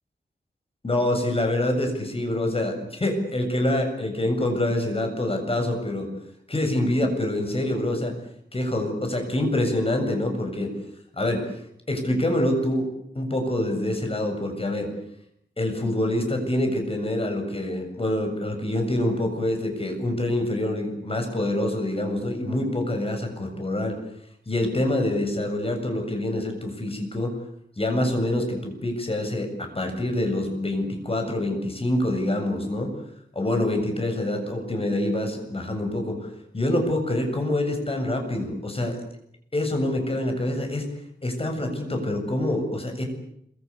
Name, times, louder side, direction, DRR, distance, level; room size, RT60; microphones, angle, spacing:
voice 1, 0.8-6.1 6.5-8.1 8.5-10.8 11.1-11.5 11.9-12.9 13.1-14.9 15.6-24.0 24.5-27.3 27.8-32.9 33.3-39.0 39.5-40.9 41.2-43.0, left 1 dB, 35° left, 4 dB, 7.5 m, -26 dB
26.5 x 24.5 x 8.4 m, 0.74 s
wide cardioid pair, 110°, 18 cm